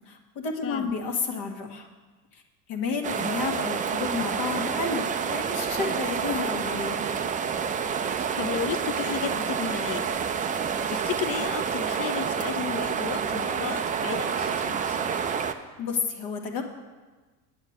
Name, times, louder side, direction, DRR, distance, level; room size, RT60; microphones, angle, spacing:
voice 1, 0.1-1.9 2.3-2.4 2.7-7.0 15.8-16.6, left 5 dB, 55° left, 3 dB, 1.5 m, -31 dB
sound 1, 3.0-15.5, right 7 dB, 15° right, 0.4 m, -28 dB
voice 2, 8.4-10.1 10.5-15.0, left 8 dB, 30° left, 11 dB, 0.7 m, -34 dB
8.9 x 8.0 x 6.4 m, 1.3 s
hypercardioid pair, 80°, 47 cm